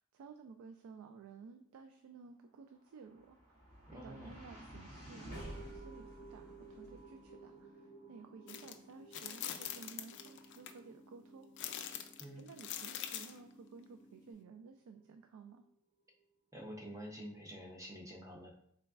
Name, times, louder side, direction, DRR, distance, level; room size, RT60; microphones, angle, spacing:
voice 1, 0.0-3.6 3.9-11.5 12.4-15.6, right 5 dB, 80° right, 6 dB, 0.3 m, -55 dB
sound 1, 2.7-15.1, right 1 dB, 35° right, 1.3 m, -54 dB
voice 2, 3.9-4.4 12.2-12.5 16.5-18.6, equal, 15° right, 0 dB, 0.6 m, -48 dB
sound 2, 4.3-14.3, left 1 dB, 15° left, 0.9 m, -62 dB
sound 3, 8.5-8.7 9.1-10.7 11.6-13.4, left 10 dB, 55° left, 0.4 m, -43 dB
3.9 x 3.3 x 2.3 m, 0.69 s
head